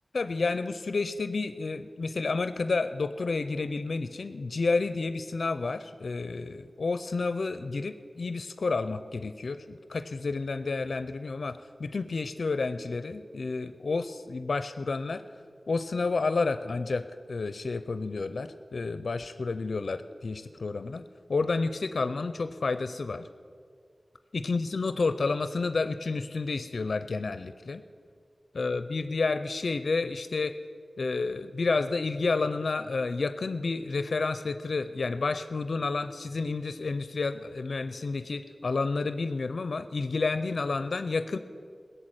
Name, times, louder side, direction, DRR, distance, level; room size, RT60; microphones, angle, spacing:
voice 1, 0.1-15.2 15.7-21.0 21.3-23.2 24.3-27.8 28.5-30.6 31.0-41.4, left 3 dB, 85° left, 11 dB, 0.5 m, -30 dB
17.0 x 6.8 x 9.0 m, 2.1 s
wide cardioid pair, 75°, 0 cm